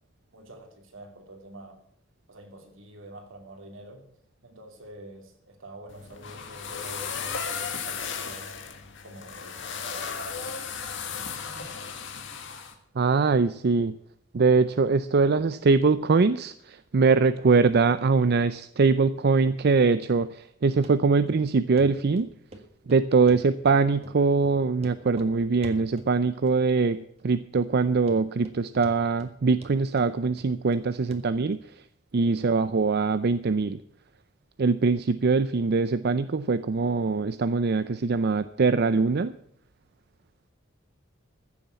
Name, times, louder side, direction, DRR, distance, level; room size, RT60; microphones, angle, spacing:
voice 1, 0.3-1.8 2.3-4.1 4.4-8.5 9.0-10.1 10.7-10.9 11.4-11.8 32.1-32.4, right 1 dB, 75° right, 4 dB, 2.9 m, -47 dB
sound 1, 5.9-12.7, left 6 dB, 65° left, 2.0 m, -35 dB
voice 2, 13.0-14.0 14.3-22.3 22.9-31.7 32.1-33.8 34.6-39.3, right 4 dB, 55° right, 13 dB, 0.5 m, -23 dB
Run, 20.8-20.9 21.3-21.4 21.8-21.9 22.2-22.6 22.9-23.8 24.0-24.2 24.4-24.5 24.8-25.3 25.6-26.1 26.5-26.9 27.2-27.3 27.7-27.8 28.1-28.6 28.8-29.3 29.6-30.8 31.1-31.2 31.5-31.6, right 1 dB, 30° right, 1.7 m, -45 dB
15.0 x 7.2 x 8.2 m, 0.72 s
head